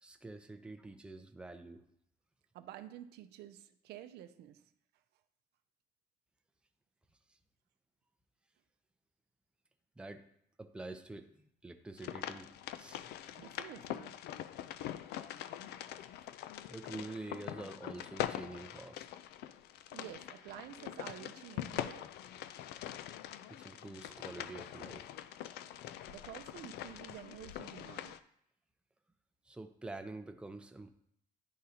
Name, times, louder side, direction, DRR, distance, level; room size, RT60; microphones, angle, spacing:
voice 1, 0.0-1.8 7.3-7.4 10.0-10.3 10.6-13.0 16.7-19.0 23.5-25.1 29.4-30.9, right 2 dB, 5° right, 6 dB, 0.6 m, -47 dB
voice 2, 2.5-4.6 13.4-14.2 19.9-22.1 26.1-28.2, right 12 dB, 75° right, 10 dB, 0.5 m, -50 dB
sound 1, 12.0-28.2, left 12 dB, 75° left, 0.4 m, -43 dB
11.0 x 3.8 x 2.8 m, 0.70 s
cardioid pair, 110°, 17 cm